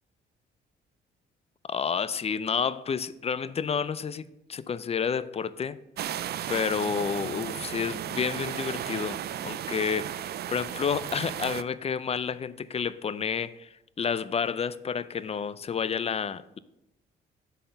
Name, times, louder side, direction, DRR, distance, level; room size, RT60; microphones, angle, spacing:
voice 1, 1.7-5.8 6.5-9.2 9.4-16.6, left 6 dB, 30° left, 0.4 m, -30 dB
sound 1, 6.0-11.6, right 11 dB, 55° right, 0.4 m, -35 dB
7.5 x 4.2 x 6.9 m
cardioid pair, 90°, 20 cm